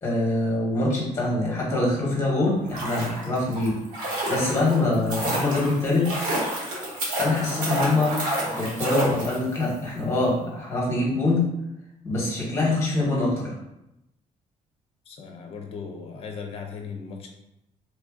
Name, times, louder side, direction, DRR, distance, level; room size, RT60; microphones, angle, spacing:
voice 1, 0.0-6.2 7.1-8.2 8.6-11.5 12.0-13.5, left 2 dB, 20° left, -5 dB, 1.2 m, -24 dB
sound 1, 2.5-9.7 10.0-10.1, right 1 dB, 90° right, 1.2 m, -29 dB
voice 2, 15.1-17.3, left 5 dB, 45° left, 3 dB, 0.6 m, -37 dB
3.1 x 2.6 x 3.6 m, 0.87 s
cardioid pair, 180°, 14 cm